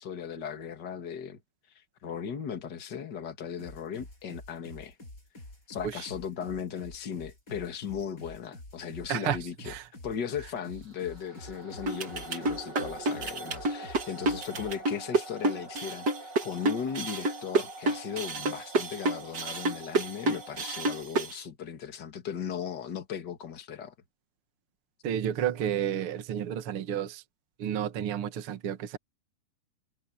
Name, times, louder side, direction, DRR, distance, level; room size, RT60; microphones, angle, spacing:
voice 1, 0.0-1.4 2.0-4.9 5.7-9.7 10.0-23.9, left 7 dB, 45° left, 1.4 m, -37 dB
sound 1, 3.6-14.8, left 1 dB, 15° left, 8.4 m, -48 dB
sound 2, 10.6-21.0, right 1 dB, 25° right, 8.6 m, -46 dB
sound 3, 11.9-21.4, right 2 dB, 80° right, 0.9 m, -29 dB
voice 2, 25.0-27.2 27.6-29.0, right 9 dB, 50° right, 1.7 m, -31 dB
omnidirectional pair, 5.0 m